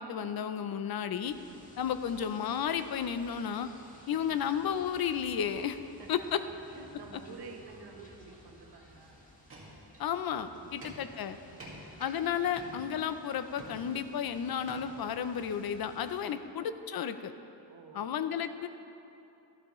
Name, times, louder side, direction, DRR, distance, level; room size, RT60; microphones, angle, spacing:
voice 1, 0.0-1.3 1.8-3.7 4.1-5.8 6.1-6.4 10.0-11.4 12.0-17.3 17.9-18.7, left 8 dB, 65° left, 10 dB, 0.6 m, -33 dB
sound 1, 1.2-16.2, left 1 dB, 20° left, 1.4 m, -56 dB
voice 2, 4.1-4.4 6.0-6.3 6.7-9.2 10.5-11.0 11.5-11.8 16.2-16.4 17.7-18.1, right 4 dB, 75° right, 2 dB, 1.2 m, -50 dB
sound 2, 9.5-10.3 10.6-12.3 12.6-13.2 13.6-14.2 14.7-15.0, right 1 dB, 35° right, 1.8 m, -49 dB
13.0 x 12.0 x 3.1 m, 2.8 s
wide cardioid pair, 180°, 40 cm